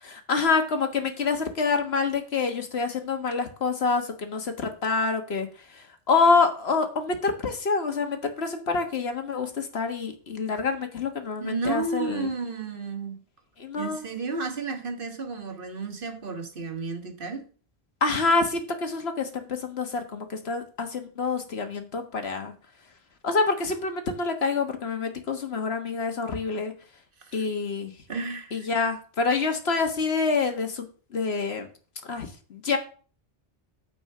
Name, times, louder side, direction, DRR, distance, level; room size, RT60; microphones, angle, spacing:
voice 1, 0.0-12.3 13.6-14.1 18.0-22.5 23.2-26.7 27.3-27.9 28.5-31.7 32.1-32.8, left 4 dB, 85° left, 1.6 m, -27 dB
voice 2, 11.4-13.2 13.8-17.5 27.2-27.4 28.1-28.7, right 4 dB, 60° right, 1.4 m, -32 dB
9.3 x 4.4 x 6.5 m
omnidirectional pair, 1.0 m